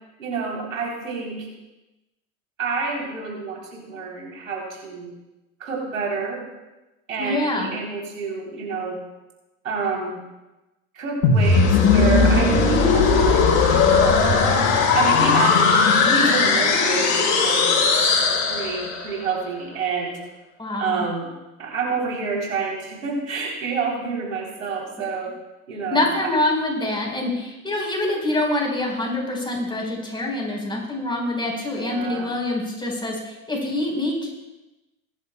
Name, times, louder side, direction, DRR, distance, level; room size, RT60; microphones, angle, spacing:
voice 1, 0.2-1.5 2.6-5.1 5.6-6.4 7.1-9.0 9.6-10.2 10.9-14.6 14.9-15.8 16.1-17.8 18.5-20.2 20.8-21.3 21.6-25.3 25.7-26.3 31.8-32.3, right 4 dB, 85° right, -1 dB, 3.5 m, -28 dB
voice 2, 7.2-7.7 20.6-21.0 25.9-34.3, left 1 dB, 10° left, -1 dB, 4.3 m, -25 dB
sound 1, 11.2-19.1, left 4 dB, 50° left, 3.9 m, -18 dB
22.5 x 10.5 x 2.2 m, 1.0 s
hypercardioid pair, 80°, 40 cm